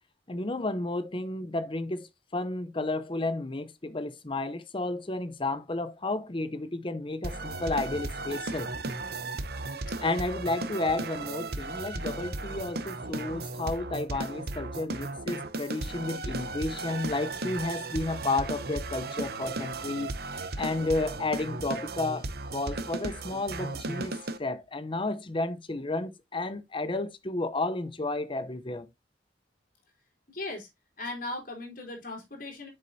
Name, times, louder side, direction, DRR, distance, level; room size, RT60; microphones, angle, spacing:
voice 1, 0.3-8.7 10.0-20.1 20.6-28.9, left 2 dB, 30° left, 0.8 m, -32 dB
sound 1, 7.2-24.4, right 2 dB, 60° right, 0.9 m, -35 dB
voice 2, 30.3-30.7 31.0-32.7, left 2 dB, 50° left, 3.9 m, -38 dB
8.3 x 6.5 x 2.7 m
head